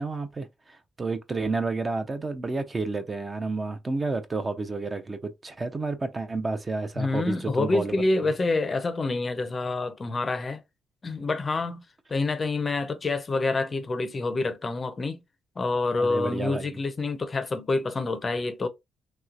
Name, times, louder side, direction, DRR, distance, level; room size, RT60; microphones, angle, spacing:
voice 1, 0.0-8.3 16.0-16.8, right 3 dB, 30° right, 0.6 m, -31 dB
voice 2, 7.0-10.6 11.0-11.8 12.1-15.2 15.6-18.7, left 3 dB, 35° left, 0.5 m, -27 dB
3.1 x 2.9 x 2.4 m
cardioid pair, 90°, 0 cm